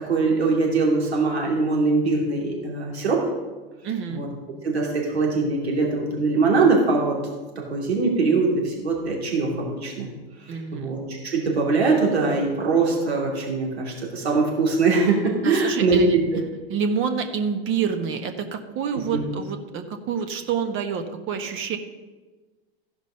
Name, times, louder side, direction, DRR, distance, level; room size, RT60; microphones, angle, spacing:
voice 1, 0.0-3.2 4.1-4.3 4.6-7.2 7.7-10.1 10.4-16.2 19.1-19.2, right 3 dB, 90° right, -2 dB, 2.7 m, -22 dB
voice 2, 3.8-4.2 10.5-10.9 15.4-16.1 16.7-21.8, right 6 dB, 40° right, 7 dB, 1.4 m, -27 dB
14.5 x 5.2 x 5.6 m, 1.3 s
hypercardioid pair, 100°, 31 cm